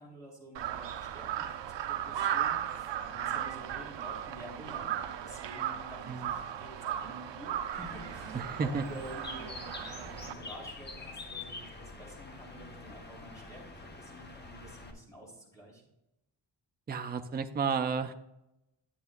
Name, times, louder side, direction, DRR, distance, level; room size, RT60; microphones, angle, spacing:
voice 1, 0.0-1.5 1.7-4.9 5.2-15.8, equal, 10° left, -4 dB, 3.5 m, -49 dB
Crow, 0.5-10.3, right 10 dB, 80° right, 0.7 m, -36 dB
Bird, 7.7-14.9, left 3 dB, 25° left, 0.9 m, -46 dB
voice 2, 8.3-8.8 16.9-18.1, right 5 dB, 25° right, 7 dB, 0.4 m, -32 dB
11.5 x 7.8 x 2.4 m, 0.90 s
wide cardioid pair, 160°, 43 cm